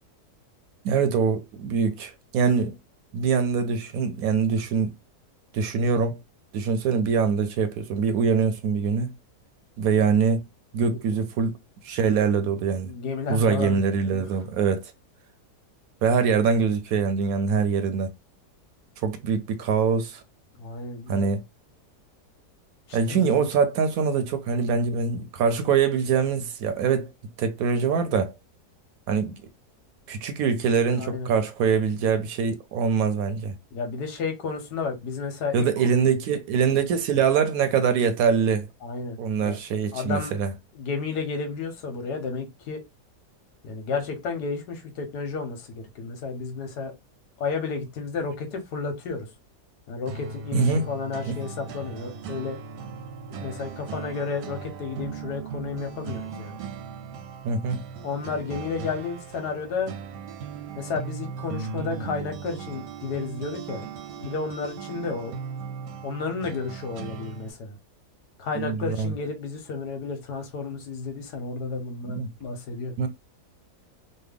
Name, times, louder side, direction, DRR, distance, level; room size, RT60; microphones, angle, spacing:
voice 1, 0.8-2.7 3.1-4.9 5.5-6.2 6.5-9.1 9.8-10.4 10.7-11.6 11.8-12.9 13.3-14.9 16.0-18.1 19.0-20.2 21.1-21.4 22.9-27.1 27.4-28.3 29.1-29.4 30.1-33.5 35.5-38.7 39.2-40.5 50.5-50.8 51.2-51.4 57.4-57.8 68.5-69.1 72.1-72.3 73.0-73.1, right 6 dB, 70° right, 0.9 m, -23 dB
voice 2, 12.9-13.8 14.1-14.2 20.6-21.3 22.9-23.2 31.0-31.3 33.7-35.7 38.8-39.6 39.9-40.3 40.7-42.8 43.6-46.9 47.4-49.3 49.9-52.6 53.4-56.6 58.0-59.9 60.8-63.9 64.2-65.3 66.0-67.8 68.4-72.9, left 4 dB, 85° left, 1.4 m, -32 dB
sound 1, 50.1-67.5, right 6 dB, 90° right, 1.2 m, -38 dB
3.2 x 2.2 x 3.3 m
omnidirectional pair, 1.7 m